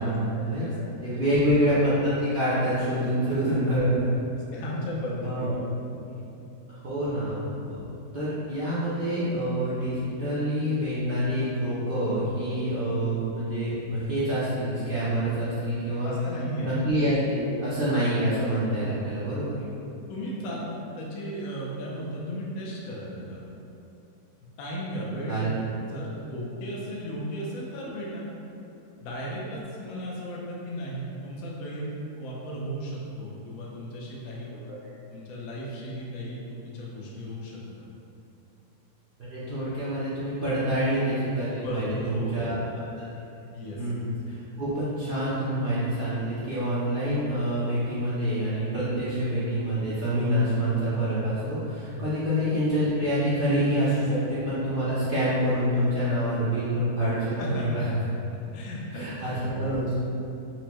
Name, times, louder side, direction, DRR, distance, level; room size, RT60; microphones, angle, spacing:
voice 1, 0.0-4.1 5.2-5.6 6.7-7.9 8.1-16.1 16.6-19.5 25.3-25.6 34.7-34.9 39.2-42.6 43.8-57.9 58.9-60.0, equal, 65° right, -11 dB, 0.5 m, -27 dB
voice 2, 0.5-1.5 3.0-3.1 4.5-5.4 6.1-6.3 16.0-16.8 19.5-19.6 20.1-20.6 21.0-23.4 24.6-25.4 25.8-28.3 29.0-34.5 35.1-37.8 41.6-42.5 43.5-43.9 44.3-44.4 51.9-52.1 54.0-54.1 57.3-58.0 58.5-59.7, equal, 75° left, -5 dB, 1.1 m, -35 dB
4.5 x 2.1 x 2.9 m, 2.8 s
omnidirectional pair, 1.6 m